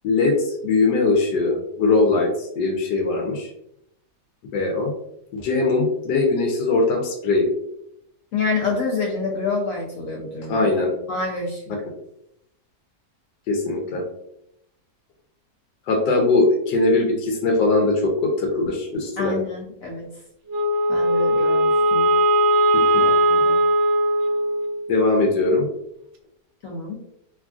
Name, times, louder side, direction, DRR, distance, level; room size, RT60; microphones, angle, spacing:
voice 1, 0.0-3.5 4.5-4.9 5.3-7.5 10.5-10.9 13.5-14.0 15.9-19.4 22.7-23.0 24.9-25.7, left 3 dB, 85° left, 1 dB, 1.2 m, -21 dB
voice 2, 8.3-10.7 11.1-11.6 19.2-20.1 20.9-22.1 23.0-23.6 26.6-27.0, left 3 dB, 70° left, -1 dB, 0.8 m, -27 dB
Wind instrument woodwind instrument, 20.5-24.9, right 1 dB, 70° right, 0.9 m, -19 dB
3.3 x 2.4 x 2.3 m, 0.77 s
omnidirectional pair, 1.8 m